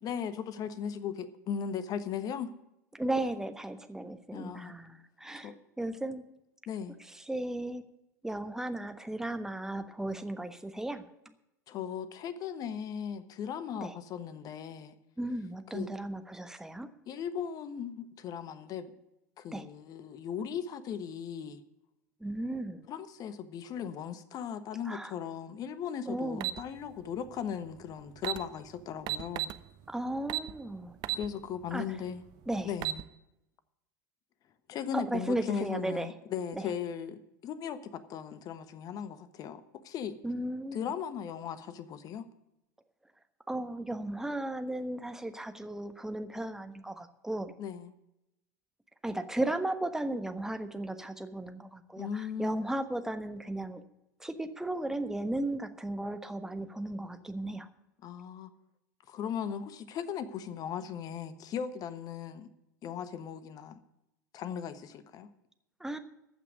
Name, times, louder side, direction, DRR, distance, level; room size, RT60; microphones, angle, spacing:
voice 1, 0.0-2.5 4.3-4.7 5.4-5.5 6.7-7.0 11.7-15.0 15.7-15.9 17.1-18.9 19.4-21.6 22.9-29.5 31.1-32.2 32.6-33.0 34.7-40.2 40.7-42.2 47.6-47.9 52.0-52.7 58.0-58.5 59.1-62.5 62.8-63.8 64.3-65.3, left 8 dB, 40° left, 1.2 m, -37 dB
voice 2, 2.9-5.5 5.8-6.2 7.3-7.8 8.2-11.0 13.7-13.9 15.2-16.9 19.5-19.6 22.2-22.9 24.9-25.1 26.1-26.5 29.9-30.9 31.7-31.8 32.5-32.7 34.9-36.1 36.5-36.6 40.2-40.8 43.5-47.5 49.0-53.8 54.2-57.7 65.8-66.0, right 1 dB, 5° right, 1.2 m, -35 dB
sound 1, 26.4-26.6 27.8-27.9 28.2-28.4 29.1-29.6 30.3-30.5 31.0-31.3 31.7-31.8 32.6-33.0, right 15 dB, 45° right, 0.8 m, -32 dB
14.5 x 6.0 x 9.6 m
figure-of-eight pair, 80°, 10 cm